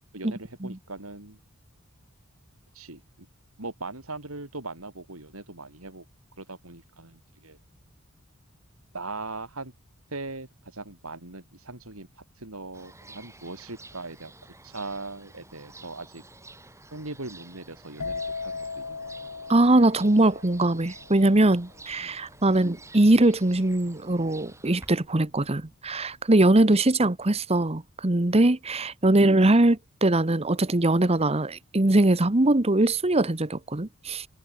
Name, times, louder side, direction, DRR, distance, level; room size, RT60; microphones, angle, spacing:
voice 1, 0.1-1.4 2.7-3.0 3.6-6.0 6.4-7.6 8.9-9.7 10.1-14.3 14.6-16.2 16.9-19.1 22.0-22.2 22.5-22.8 26.7-26.8 29.1-29.3, right 3 dB, 80° right, 4.6 m, -40 dB
sound 1, 12.7-24.9, right 2 dB, 15° right, 4.9 m, -50 dB
sound 2, 18.0-25.6 25.8-26.3, left 4 dB, 90° left, 1.9 m, -38 dB
voice 2, 19.5-34.3, right 2 dB, 30° right, 1.1 m, -21 dB
head